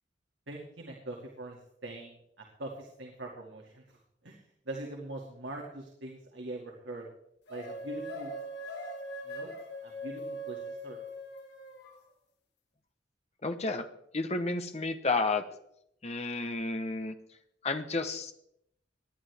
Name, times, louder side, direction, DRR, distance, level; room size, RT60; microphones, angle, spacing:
voice 1, 0.5-3.8 4.2-4.4 4.7-7.1 7.5-8.3 9.3-9.5 9.8-11.0, right 2 dB, 85° right, -1 dB, 2.3 m, -42 dB
sound 1, 7.5-12.0, equal, 65° left, 2.6 m, -41 dB
voice 2, 13.4-13.9 14.1-15.4 16.0-17.2 17.6-18.3, left 3 dB, 35° left, 7 dB, 1.1 m, -31 dB
19.5 x 11.0 x 3.5 m, 0.75 s
head